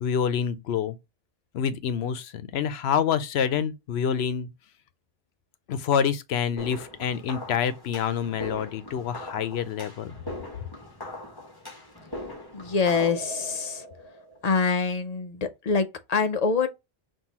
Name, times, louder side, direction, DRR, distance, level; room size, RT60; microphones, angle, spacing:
voice 1, 0.0-0.9 1.5-4.5 5.7-10.2, left 7 dB, 85° left, 0.9 m, -27 dB
sound 1, 6.6-14.7, left 1 dB, 20° left, 1.5 m, -40 dB
voice 2, 12.5-13.8 14.4-16.7, left 5 dB, 50° left, 0.6 m, -25 dB
5.5 x 2.6 x 2.9 m
omnidirectional pair, 1.0 m